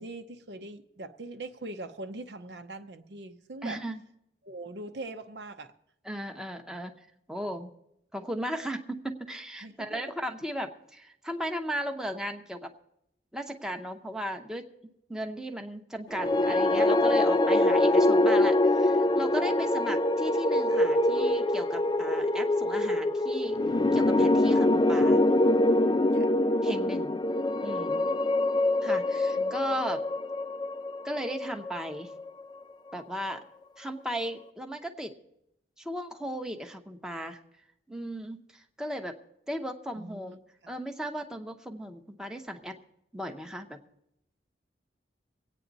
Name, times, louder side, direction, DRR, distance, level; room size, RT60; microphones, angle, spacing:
voice 1, 0.0-3.8 4.4-5.7 9.6-10.1 26.1-26.3 29.4-29.5 40.0-40.7, right 2 dB, 70° right, 7 dB, 0.9 m, -42 dB
voice 2, 3.6-4.0 6.0-6.9 7.3-7.7 8.1-12.7 13.3-14.7 15.1-23.6 23.9-25.2 26.6-27.2 27.6-28.0 28.8-30.0 31.0-32.1 32.9-33.4 33.8-35.1 35.8-37.4 37.9-39.2 39.5-40.4 40.7-42.8 43.1-43.8, equal, 5° right, 4 dB, 0.8 m, -36 dB
sound 1, 16.1-32.4, left 1 dB, 25° left, 0.4 m, -24 dB
23.5 x 8.9 x 4.0 m, 0.79 s
head